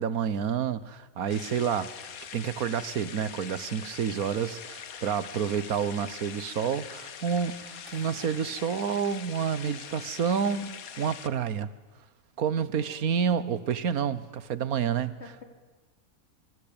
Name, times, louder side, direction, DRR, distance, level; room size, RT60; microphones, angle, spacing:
voice 1, 0.0-1.9 2.3-11.7 12.4-15.2, right 7 dB, 85° right, 16 dB, 1.6 m, -29 dB
sound 1, 1.3-11.3, left 8 dB, 80° left, 1.6 m, -43 dB
sound 2, 7.9-10.0, right 1 dB, 55° right, 3.2 m, -57 dB
voice 2, 12.6-13.1 15.2-15.4, left 3 dB, 50° left, 4 dB, 4.1 m, -50 dB
26.5 x 24.5 x 8.9 m, 1.2 s
omnidirectional pair, 1.5 m